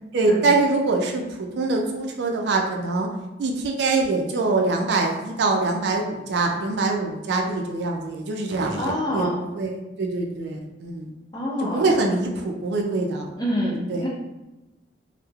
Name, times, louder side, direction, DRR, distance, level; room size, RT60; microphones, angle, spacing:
voice 1, 0.1-3.1 3.4-9.3 9.5-11.1 11.7-13.3 13.9-14.0, right 3 dB, 60° right, 2 dB, 0.3 m, -24 dB
voice 2, 8.8-9.4 11.3-11.8 13.4-14.1, equal, 20° left, -6 dB, 0.6 m, -26 dB
3.0 x 2.0 x 2.3 m, 1.0 s
head